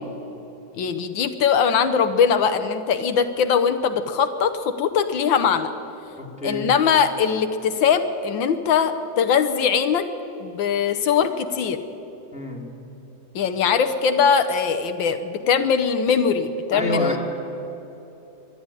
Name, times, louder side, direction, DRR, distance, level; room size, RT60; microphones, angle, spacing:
voice 1, 0.7-5.7 6.4-10.0 10.4-11.8 13.4-17.2, left 6 dB, 85° left, 9 dB, 1.8 m, -21 dB
voice 2, 6.2-6.7 12.3-12.7 16.7-17.2, left 1 dB, 5° right, -2 dB, 2.5 m, -26 dB
23.5 x 11.5 x 9.8 m, 3.0 s
omnidirectional pair, 2.0 m